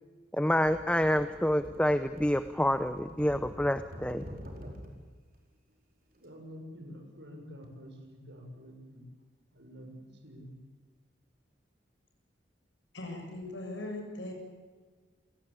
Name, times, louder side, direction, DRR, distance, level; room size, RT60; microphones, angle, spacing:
voice 1, 0.3-4.2, equal, 5° left, 10 dB, 0.7 m, -27 dB
sound 1, 0.6-5.1 6.1-6.3, equal, 50° right, 4.6 m, -47 dB
voice 2, 6.2-9.0 9.5-10.5, equal, 70° right, 3 dB, 6.6 m, -48 dB
voice 3, 12.9-14.3, left 1 dB, 75° left, 3 dB, 7.4 m, -39 dB
28.0 x 18.0 x 8.6 m, 1.5 s
head